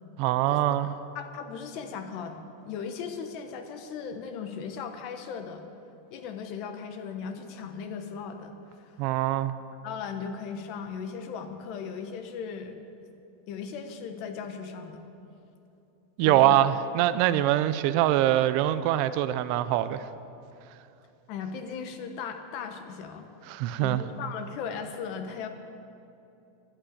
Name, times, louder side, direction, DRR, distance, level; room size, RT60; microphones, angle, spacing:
voice 1, 0.2-1.0 9.0-9.5 16.2-20.0 23.5-24.0, right 13 dB, 45° right, 14 dB, 0.4 m, -24 dB
voice 2, 1.1-2.4 2.7-5.7 6.1-9.0 9.8-12.8 13.5-15.1 16.2-16.6 21.3-23.3 23.8-25.5, left 6 dB, 45° left, 7 dB, 1.1 m, -37 dB
12.0 x 8.7 x 8.5 m, 2.8 s
supercardioid pair, 160°, 0 cm